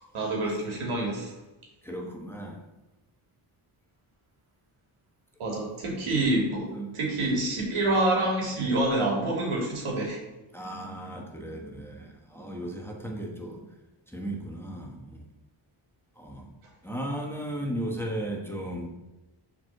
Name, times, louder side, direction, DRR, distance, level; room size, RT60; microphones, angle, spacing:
voice 1, 0.1-1.3 5.4-6.7 6.9-10.2, right 2 dB, 85° right, -1 dB, 2.8 m, -27 dB
voice 2, 1.8-2.6 6.7-6.9 10.5-13.7 14.1-15.2 16.2-16.5 16.8-18.9, right 1 dB, 5° left, -1 dB, 1.1 m, -36 dB
7.0 x 4.8 x 6.4 m, 1.0 s
wide cardioid pair, 150°, 49 cm